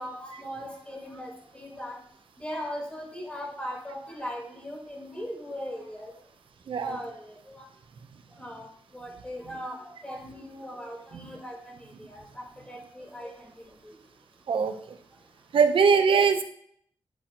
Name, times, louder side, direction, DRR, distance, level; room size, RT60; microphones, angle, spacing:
voice 1, 0.0-2.0 2.4-6.1 6.8-7.4 8.4-8.7 8.9-9.8 10.0-11.7 12.1-13.5 13.8-13.9, equal, 10° left, -1 dB, 4.2 m, -38 dB
voice 2, 15.5-16.4, right 5 dB, 75° right, 7 dB, 1.0 m, -21 dB
10.5 x 8.5 x 3.1 m, 0.63 s
cardioid pair, 90°, 9 cm